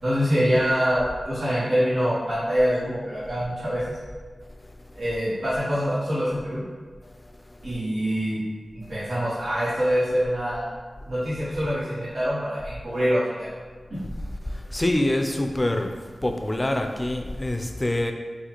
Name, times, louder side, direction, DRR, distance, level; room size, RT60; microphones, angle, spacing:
voice 1, 0.0-4.0 4.9-6.6 7.6-8.4 8.7-10.6 11.1-13.5, equal, 90° right, -14 dB, 1.3 m, -25 dB
voice 2, 14.5-15.9 16.2-18.1, left 1 dB, 25° left, 4 dB, 0.4 m, -25 dB
3.9 x 2.4 x 2.9 m, 1.5 s
cardioid pair, 45°, 0 cm